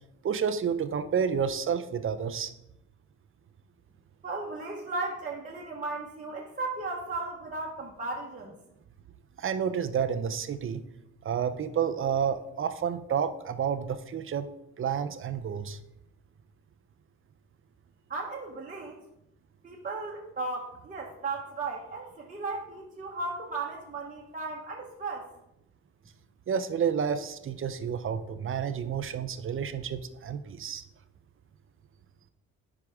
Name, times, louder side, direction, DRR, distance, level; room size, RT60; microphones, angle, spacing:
voice 1, 0.2-2.5 9.4-10.8 11.2-14.5 14.8-15.8 26.5-30.8, right 7 dB, 45° right, 11 dB, 0.6 m, -30 dB
voice 2, 4.2-8.6 18.1-19.0 19.6-25.3, right 3 dB, 25° right, -3 dB, 1.2 m, -36 dB
10.0 x 4.8 x 3.6 m, 0.85 s
cardioid pair, 90°, 30 cm